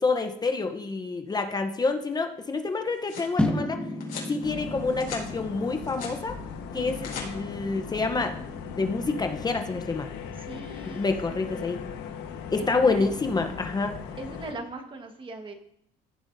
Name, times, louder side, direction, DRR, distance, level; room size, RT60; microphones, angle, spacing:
voice 1, 0.0-3.8 4.3-6.4 6.7-8.4 8.7-10.1 10.8-11.8 12.5-14.0, left 3 dB, 25° left, 6 dB, 0.8 m, -27 dB
sound 1, 2.7-3.3 4.0-4.3 4.8-5.3 5.6-6.2 6.8-7.3, left 6 dB, 60° left, 4.7 m, -39 dB
sound 2, 3.4-9.6, left 1 dB, 5° left, 1.6 m, -34 dB
sound 3, 4.4-14.5, left 6 dB, 85° left, 1.3 m, -39 dB
voice 2, 10.4-11.8 12.6-13.1 14.1-15.5, right 2 dB, 30° right, 5 dB, 1.5 m, -40 dB
15.5 x 7.9 x 2.7 m, 0.73 s
cardioid pair, 110°, 17 cm